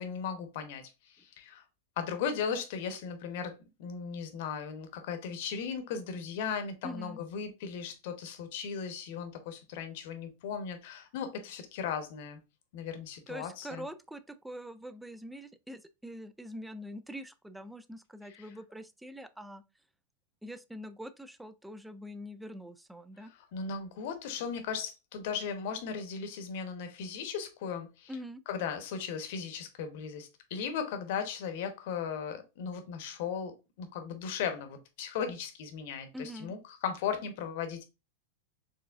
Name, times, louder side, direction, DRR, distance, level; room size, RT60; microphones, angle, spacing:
voice 1, 0.0-1.6 2.0-12.4 12.7-13.9 18.3-18.5 23.2-28.1 28.5-33.5 33.8-37.8, left 6 dB, 60° left, 0.9 m, -37 dB
voice 2, 6.8-7.2 13.3-19.6 20.4-23.3 28.1-28.4 36.1-36.5, equal, 5° right, 0.4 m, -44 dB
4.6 x 3.1 x 2.4 m
hypercardioid pair, 110°, 0 cm